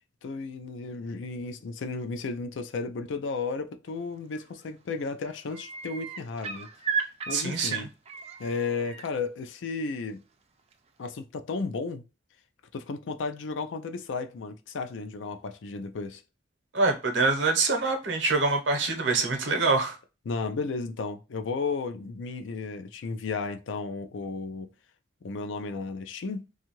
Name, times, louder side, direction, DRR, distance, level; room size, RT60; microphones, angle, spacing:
voice 1, 0.2-6.7 7.3-7.9 8.4-10.2 11.0-12.0 12.7-16.2 20.3-24.7 25.2-26.5, left 4 dB, 85° left, 0.4 m, -33 dB
sound 1, 4.4-4.7 5.0-9.1 10.7-10.8, right 6 dB, 35° right, 0.4 m, -35 dB
voice 2, 7.3-7.8 16.7-20.0, right 3 dB, 75° right, 0.8 m, -25 dB
2.7 x 2.3 x 2.9 m
head